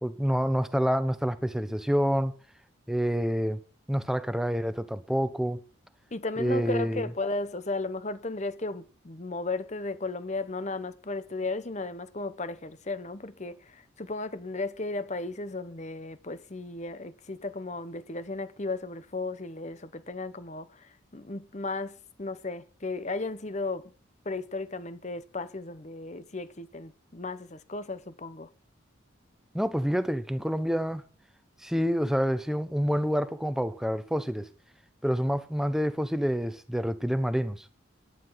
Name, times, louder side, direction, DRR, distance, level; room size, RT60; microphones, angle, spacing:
voice 1, 0.0-2.3 2.9-3.6 3.9-5.6 6.4-7.0 29.5-31.0 31.6-34.5 35.0-37.7, equal, ahead, 0.9 m, -27 dB
voice 2, 6.1-23.8 24.2-28.5, left 3 dB, 35° left, 1.0 m, -35 dB
11.5 x 11.0 x 5.7 m
head